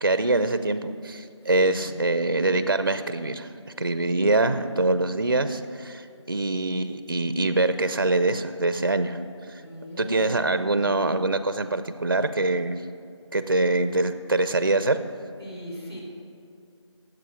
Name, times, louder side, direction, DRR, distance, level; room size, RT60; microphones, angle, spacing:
voice 1, 0.0-3.5 3.8-9.2 9.5-9.6 10.0-12.8 13.3-15.0, right 2 dB, 45° right, 11 dB, 0.5 m, -24 dB
voice 2, 1.6-2.0 9.6-10.9 15.4-16.0, equal, 55° left, -1 dB, 3.3 m, -40 dB
14.0 x 7.7 x 5.0 m, 2.5 s
figure-of-eight pair, 180°, 16 cm